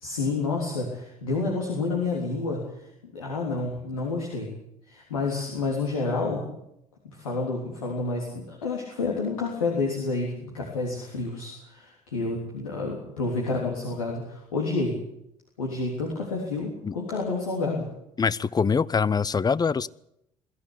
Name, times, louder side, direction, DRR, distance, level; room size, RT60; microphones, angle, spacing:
voice 1, 0.0-2.6 3.1-4.5 4.9-6.5 7.1-14.9 15.6-17.8, left 3 dB, 80° left, -1 dB, 3.4 m, -29 dB
voice 2, 18.2-19.9, left 5 dB, 20° left, 21 dB, 0.7 m, -24 dB
21.5 x 14.0 x 9.9 m, 0.81 s
figure-of-eight pair, 55°, 18 cm